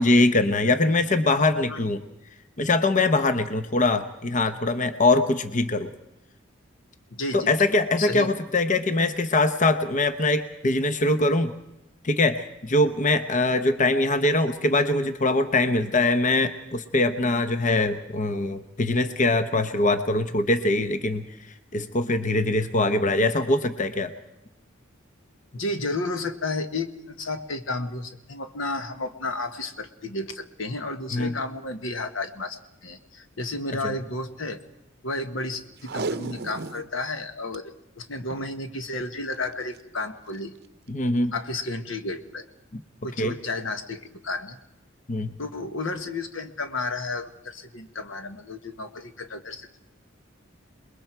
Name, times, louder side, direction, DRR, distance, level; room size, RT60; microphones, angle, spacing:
voice 1, 0.0-2.0 2.6-5.9 7.3-11.5 12.0-21.3 21.7-24.1 31.1-31.3 33.8-33.9 40.9-41.3 42.7-42.8 43.2-43.3 45.1-45.3, left 2 dB, 40° left, 9 dB, 0.8 m, -22 dB
voice 2, 7.1-7.5 8.0-8.3 25.5-34.6 35.0-40.5 41.3-42.5 43.0-44.6 45.4-49.8, left 2 dB, 80° left, 8 dB, 1.4 m, -32 dB
Packing tape duct tape, 35.8-36.9 37.3-37.4 37.5-37.6 38.2-38.5 39.5-39.8 40.3-40.4, right 3 dB, 55° right, 0.7 m, -33 dB
28.5 x 21.0 x 4.6 m, 0.89 s
head